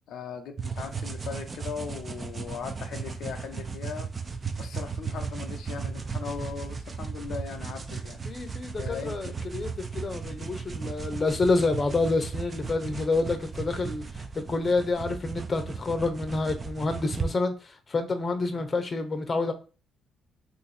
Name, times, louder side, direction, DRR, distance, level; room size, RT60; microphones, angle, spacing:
voice 1, 0.1-4.1 4.6-9.4 13.2-13.4 18.5-18.7, left 6 dB, 75° left, 0.5 m, -39 dB
sound 1, 0.6-17.3, right 5 dB, 35° right, 0.5 m, -36 dB
voice 2, 8.3-19.5, left 3 dB, 35° left, 0.7 m, -28 dB
2.6 x 2.6 x 4.1 m
cardioid pair, 90°, 0 cm